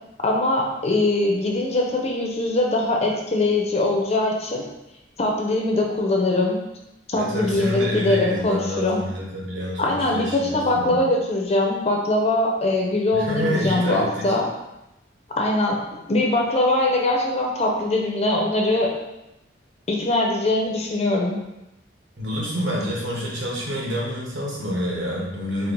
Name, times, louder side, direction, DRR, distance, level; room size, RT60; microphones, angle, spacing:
voice 1, 0.2-4.6 5.2-6.6 7.1-9.0 9.8-14.5 15.4-15.8 16.1-18.9 19.9-21.4, left 2 dB, 35° left, 0 dB, 0.5 m, -22 dB
voice 2, 7.2-11.0 13.1-14.3 22.2-25.7, equal, 90° right, -4 dB, 1.2 m, -28 dB
4.4 x 2.1 x 3.8 m, 0.92 s
head